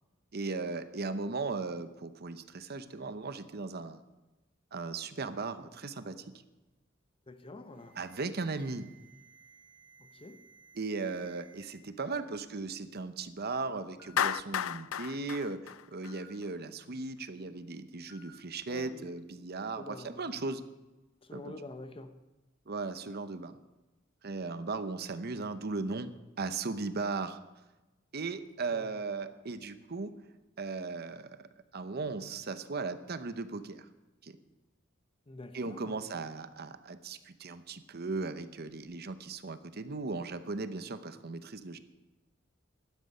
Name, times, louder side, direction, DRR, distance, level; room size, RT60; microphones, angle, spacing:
voice 1, 0.3-4.0 4.7-6.2 8.0-8.9 10.7-20.6 21.3-21.5 22.7-23.6 24.2-26.1 26.4-27.4 28.1-30.1 30.6-31.5 31.7-33.9 34.2-34.4 35.5-41.8, right 3 dB, 50° right, 11 dB, 0.9 m, -37 dB
voice 2, 7.3-8.0 10.0-10.4 18.7-19.1 19.7-20.4 21.2-22.2 28.7-28.9 35.3-36.0, left 2 dB, 25° left, 9 dB, 0.9 m, -47 dB
Alarm, 7.7-11.7 12.0-12.4 13.3-13.4 14.0-14.2 16.0-16.3 18.1-18.3, right 2 dB, 5° right, 3.9 m, -58 dB
Clapping, 14.2-16.5, left 9 dB, 85° left, 0.4 m, -33 dB
16.0 x 12.0 x 5.5 m, 1.1 s
head